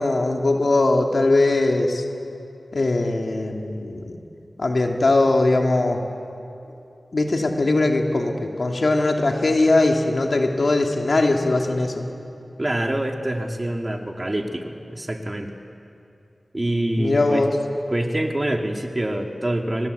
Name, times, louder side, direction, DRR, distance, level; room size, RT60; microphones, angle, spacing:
voice 1, 0.0-2.0 2.7-4.2 4.6-6.0 7.1-12.1 17.0-17.6, left 2 dB, 65° left, 2 dB, 2.5 m, -20 dB
voice 2, 12.6-15.5 16.5-17.5 17.9-19.9, right 1 dB, 30° right, 3 dB, 2.2 m, -25 dB
24.0 x 20.0 x 8.2 m, 2.8 s
cardioid pair, 50°, 0 cm